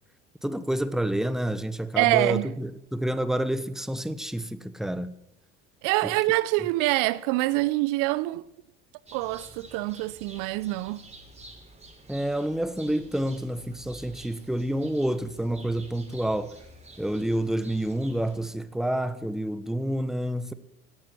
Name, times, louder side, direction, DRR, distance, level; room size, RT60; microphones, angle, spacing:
voice 1, 0.4-5.1 6.0-6.1 12.1-16.6 17.0-20.5, right 1 dB, ahead, 1.2 m, -28 dB
voice 2, 2.0-2.5 5.8-8.4 9.1-11.0, right 19 dB, 60° right, 0.7 m, -25 dB
sound 1, 9.1-18.5, right 1 dB, 20° right, 4.4 m, -49 dB
17.0 x 12.0 x 6.1 m
hypercardioid pair, 70°, 35 cm